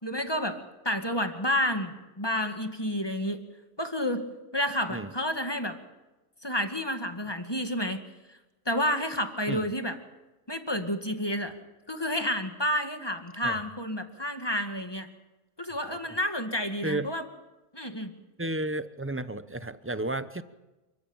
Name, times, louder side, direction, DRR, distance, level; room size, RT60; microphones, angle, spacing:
voice 1, 0.0-3.4 3.8-4.2 4.5-5.8 6.4-8.0 8.7-10.0 10.5-11.6 11.9-15.1 15.6-17.3 17.7-18.1, equal, 15° left, 6 dB, 2.1 m, -30 dB
voice 2, 18.4-20.4, right 2 dB, 15° right, 12 dB, 0.5 m, -32 dB
28.5 x 16.0 x 8.9 m, 1.1 s
omnidirectional pair, 1.8 m